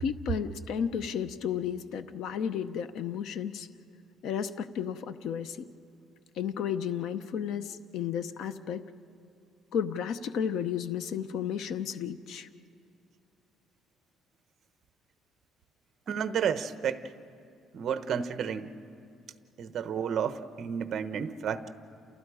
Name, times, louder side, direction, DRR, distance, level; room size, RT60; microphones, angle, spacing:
voice 1, 0.0-3.7 4.2-5.7 6.4-8.8 9.7-12.5, left 8 dB, 65° left, 12 dB, 0.8 m, -33 dB
voice 2, 16.1-17.0 17.7-18.7 19.6-21.7, right 7 dB, 45° right, 10 dB, 1.0 m, -31 dB
29.5 x 28.5 x 4.9 m, 2.5 s
cardioid pair, 160°, 0 cm